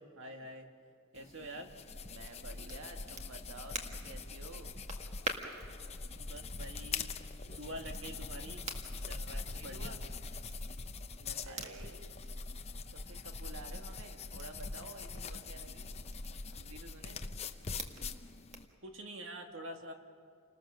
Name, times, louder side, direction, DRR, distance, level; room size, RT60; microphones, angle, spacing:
voice 1, 0.2-0.7 1.1-1.7 6.1-7.1 7.5-8.6 9.0-10.0 11.2-11.9 18.8-19.9, right 1 dB, 60° right, 3 dB, 2.0 m, -47 dB
sound 1, 1.2-18.6, left 4 dB, 30° left, 0.7 m, -43 dB
Crackle, 2.1-18.8, right 3 dB, 30° right, 1.7 m, -49 dB
voice 2, 2.1-4.8 9.3-10.0 11.4-12.1 12.9-16.0 16.5-17.2, right 2 dB, 85° right, 4 dB, 1.6 m, -51 dB
29.5 x 20.0 x 6.4 m, 2.1 s
head